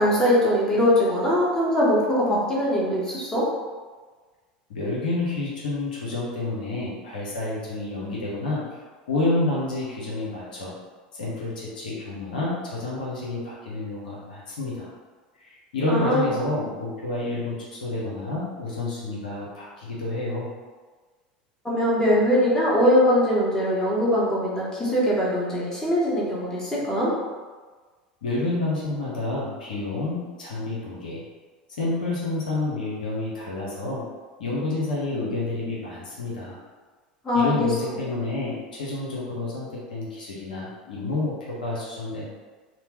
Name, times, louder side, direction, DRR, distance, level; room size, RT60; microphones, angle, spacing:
voice 1, 0.0-3.5 15.9-16.2 21.6-27.1 37.2-37.7, equal, 15° left, -7 dB, 1.1 m, -21 dB
voice 2, 4.7-8.6 9.1-10.7 11.2-14.9 15.4-20.5 28.2-31.2 31.8-34.0 34.4-36.6 37.3-42.2, left 2 dB, 80° left, -5 dB, 0.7 m, -29 dB
2.9 x 2.1 x 2.9 m, 1.4 s
hypercardioid pair, 80°, 5 cm